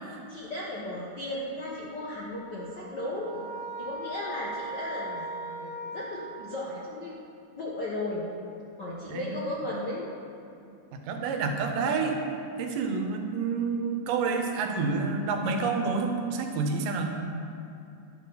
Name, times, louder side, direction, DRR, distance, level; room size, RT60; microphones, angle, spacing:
voice 1, 0.3-3.3 3.8-7.1 7.6-8.2 8.8-10.1, left 1 dB, 55° left, -5 dB, 1.2 m, -35 dB
sound 1, 2.4-6.9, right 1 dB, 75° left, 3.6 m, -39 dB
voice 2, 10.9-12.2 12.6-17.2, right 4 dB, 80° right, 4 dB, 2.6 m, -29 dB
12.0 x 11.0 x 4.0 m, 2.6 s
omnidirectional pair, 3.8 m